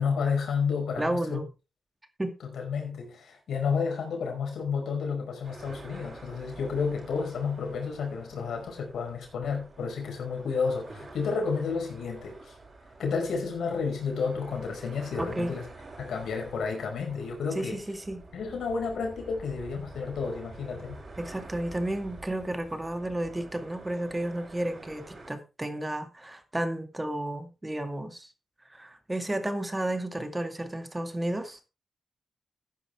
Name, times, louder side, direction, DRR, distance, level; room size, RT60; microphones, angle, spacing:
voice 1, 0.0-1.4 2.4-12.5 13.0-15.6 16.0-17.8 18.3-21.0, left 5 dB, 90° left, 5.2 m, -31 dB
voice 2, 1.0-1.4 2.2-2.3 15.2-15.5 17.6-18.2 21.2-28.3 28.7-31.6, right 1 dB, 15° right, 2.1 m, -32 dB
sound 1, 5.4-25.3, right 2 dB, 40° right, 6.0 m, -48 dB
14.0 x 10.0 x 3.4 m
cardioid pair, 85°, 0 cm